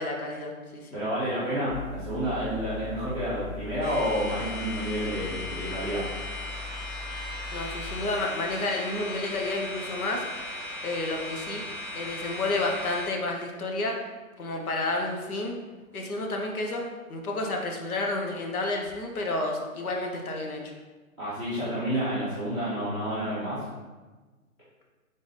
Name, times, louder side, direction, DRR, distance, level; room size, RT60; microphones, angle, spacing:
voice 1, 0.0-0.9 7.5-10.2 10.8-11.6 11.9-14.0 14.4-15.6 15.9-16.8 17.1-20.7, left 2 dB, 80° left, 1 dB, 1.0 m, -30 dB
voice 2, 0.9-6.0 21.2-23.6, equal, 5° left, -14 dB, 0.7 m, -29 dB
sound 1, 1.7-7.9, left 4 dB, 45° right, 0.8 m, -41 dB
sound 2, 3.8-13.1, left 1 dB, 15° right, 1.0 m, -37 dB
3.9 x 3.3 x 4.0 m, 1.3 s
hypercardioid pair, 165°, 43 cm